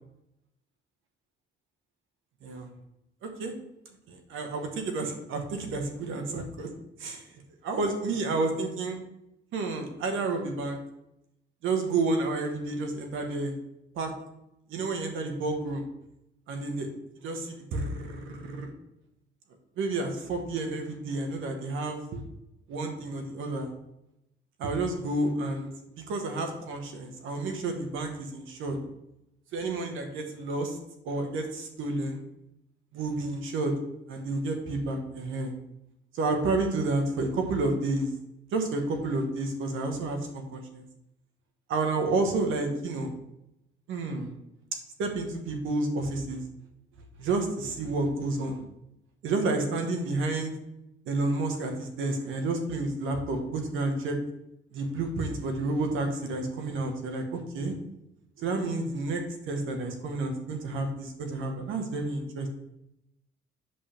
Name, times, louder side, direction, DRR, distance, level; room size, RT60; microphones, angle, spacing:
voice 1, 3.2-3.5 4.1-6.7 7.0-7.2 7.6-9.0 9.5-10.8 11.6-13.5 13.9-14.1 14.7-15.8 16.5-16.9 17.2-18.7 19.8-22.2 22.7-23.7 24.6-25.7 26.1-28.8 29.5-30.8 31.0-32.2 32.9-33.7 34.1-35.5 36.1-38.1 38.5-40.8 41.7-43.1 43.9-44.3 45.0-46.4 47.2-48.6 49.2-50.5 51.1-54.2 54.7-57.7 58.4-62.5, right 2 dB, 85° right, 5 dB, 1.5 m, -30 dB
8.5 x 7.2 x 3.5 m, 0.86 s
cardioid pair, 90°, 20 cm